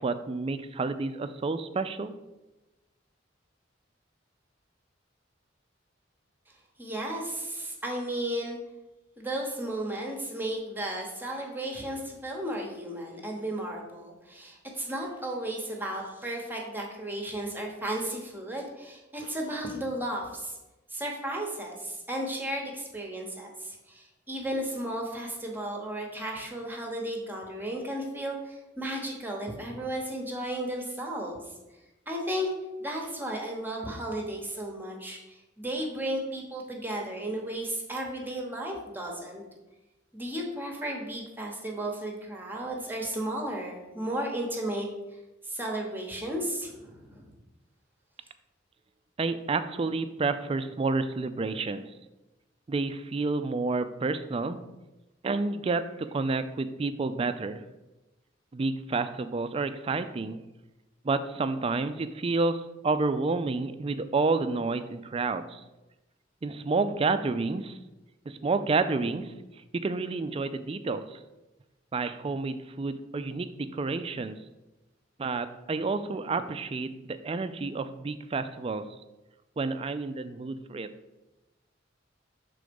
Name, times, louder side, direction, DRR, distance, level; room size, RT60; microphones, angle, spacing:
voice 1, 0.0-2.1 49.2-51.8 52.7-54.6 55.2-55.8 56.1-57.6 58.5-60.4 61.0-65.6 66.4-67.8 68.3-69.3 69.8-71.2 71.9-74.4 75.2-78.8 79.6-80.9, right 3 dB, 30° right, 11 dB, 0.3 m, -29 dB
voice 2, 6.8-8.6 9.2-20.6 20.9-31.4 32.1-32.5 32.8-39.4 40.1-44.9 45.4-47.3, right 1 dB, 10° right, 0 dB, 0.9 m, -34 dB
6.3 x 3.8 x 5.2 m, 1.0 s
head